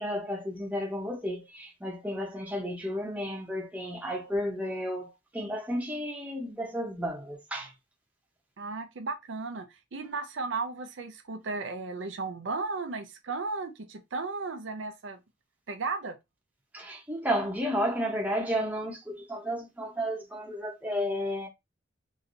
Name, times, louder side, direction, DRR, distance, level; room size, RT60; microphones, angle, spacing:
voice 1, 0.0-7.7 16.7-21.5, equal, 10° right, 0.8 m, -32 dB
voice 2, 8.6-9.7 9.9-15.2 15.7-16.2, right 3 dB, 80° right, 0.6 m, -35 dB
3.1 x 2.8 x 2.5 m
head